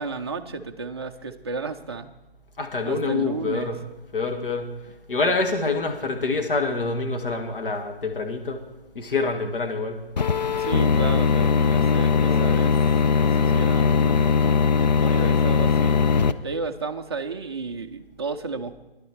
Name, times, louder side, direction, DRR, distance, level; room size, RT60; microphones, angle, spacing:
voice 1, 0.0-2.1 2.8-3.7 10.6-12.8 13.1-14.7 15.0-16.0 16.4-18.7, right 4 dB, 25° right, 5 dB, 0.5 m, -33 dB
voice 2, 2.6-3.8 4.1-4.7 5.1-8.6 9.0-10.0 12.2-12.5, left 3 dB, 60° left, 4 dB, 1.8 m, -26 dB
sound 1, 10.2-16.3, left 6 dB, 45° left, 0.4 m, -20 dB
13.0 x 11.0 x 4.6 m, 1.0 s
figure-of-eight pair, 155°, 30 cm